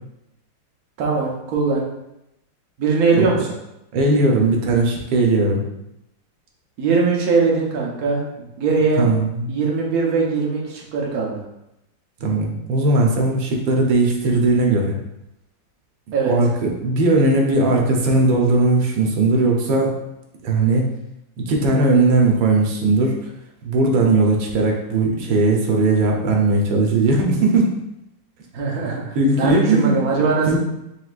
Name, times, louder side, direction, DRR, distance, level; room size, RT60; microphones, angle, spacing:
voice 1, 1.0-1.8 2.8-3.5 6.8-8.2 8.6-9.1 9.5-11.4 16.1-16.3 28.5-30.6, right 4 dB, 60° right, -2 dB, 1.2 m, -20 dB
voice 2, 3.9-5.6 9.0-9.5 12.2-14.9 16.3-19.9 20.4-20.9 21.4-23.1 23.6-27.7 29.1-30.0 30.5-30.6, right 2 dB, 90° right, 0 dB, 1.6 m, -18 dB
4.9 x 3.5 x 2.4 m, 0.87 s
omnidirectional pair, 2.0 m